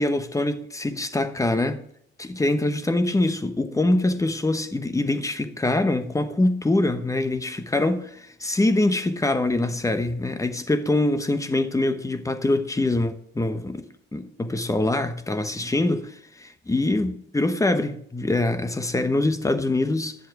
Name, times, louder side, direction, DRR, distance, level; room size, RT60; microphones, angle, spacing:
voice 1, 0.0-1.8 2.2-13.9 14.1-20.2, left 2 dB, 15° left, 1.0 m, -24 dB
10.5 x 7.5 x 4.8 m
cardioid pair, 90°, 20 cm